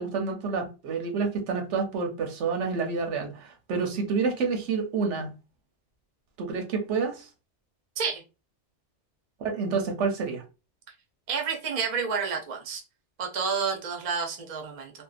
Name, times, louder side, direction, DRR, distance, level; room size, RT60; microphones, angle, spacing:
voice 1, 0.0-5.3 6.4-7.3 9.4-10.4, right 5 dB, 90° right, 1.0 m, -28 dB
voice 2, 11.3-12.8 13.2-14.9, right 5 dB, 40° right, 0.5 m, -29 dB
2.7 x 2.2 x 2.4 m
omnidirectional pair, 1.2 m